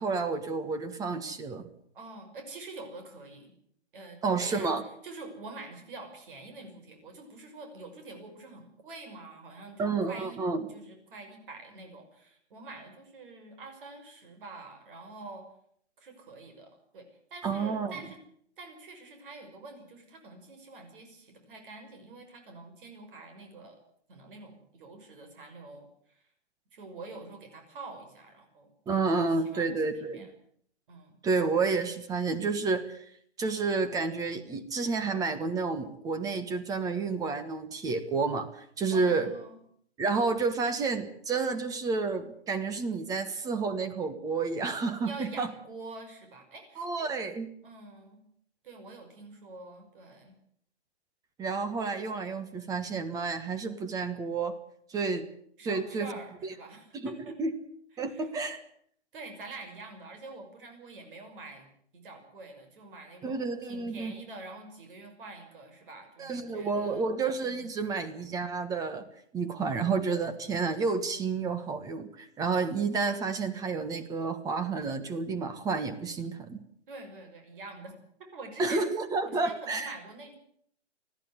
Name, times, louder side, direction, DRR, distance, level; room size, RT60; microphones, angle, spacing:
voice 1, 0.0-1.7 4.2-4.8 9.8-10.7 17.4-17.9 28.9-30.3 31.2-33.0 33.4-39.3 40.0-45.5 46.8-47.5 51.4-54.6 54.9-55.3 55.6-56.1 56.9-57.5 58.0-58.6 63.2-64.1 66.2-69.1 69.3-76.6 78.6-80.0, right 4 dB, 10° right, 11 dB, 1.4 m, -30 dB
voice 2, 1.9-3.5 3.9-4.7 5.0-10.4 10.7-15.5 16.0-18.2 18.6-23.8 24.1-26.3 26.7-30.3 30.9-31.2 38.9-39.6 45.0-47.1 47.6-48.2 48.6-50.4 55.6-57.3 58.0-58.3 59.1-67.0 67.4-67.7 76.9-78.9 79.2-80.4, right 3 dB, 50° right, 5 dB, 5.9 m, -46 dB
20.5 x 14.5 x 9.7 m, 0.67 s
hypercardioid pair, 155°, 34 cm